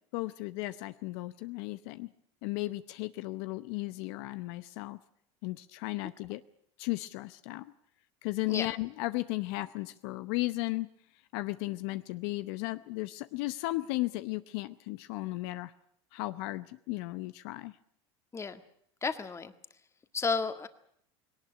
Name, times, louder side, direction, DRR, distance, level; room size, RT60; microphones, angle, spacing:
voice 1, 0.1-2.1 2.4-5.0 5.4-6.4 6.8-7.7 8.2-10.9 11.3-15.7 16.1-17.7, left 20 dB, 70° left, 13 dB, 0.8 m, -35 dB
voice 2, 19.0-19.5 20.1-20.7, left 4 dB, 20° left, 10 dB, 1.7 m, -32 dB
19.0 x 18.5 x 10.0 m, 0.69 s
supercardioid pair, 110°, 14 cm